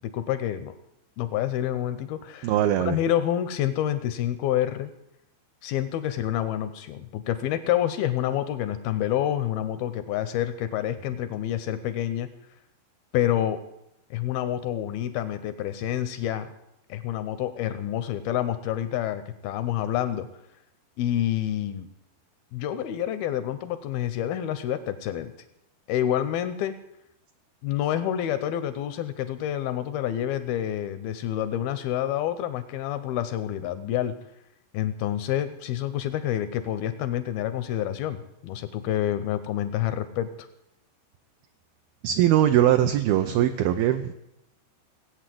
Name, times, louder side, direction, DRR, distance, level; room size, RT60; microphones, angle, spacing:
voice 1, 0.0-0.7 1.2-2.5 2.9-4.9 5.6-12.3 13.1-13.6 14.1-16.5 16.9-20.3 21.0-21.9 22.5-25.3 25.9-26.8 27.6-34.1 34.7-40.5, left 11 dB, 80° left, 12 dB, 2.3 m, -28 dB
voice 2, 2.4-3.0 42.0-44.1, right 11 dB, 80° right, 7 dB, 2.2 m, -21 dB
18.0 x 8.6 x 7.6 m, 0.84 s
omnidirectional pair, 4.9 m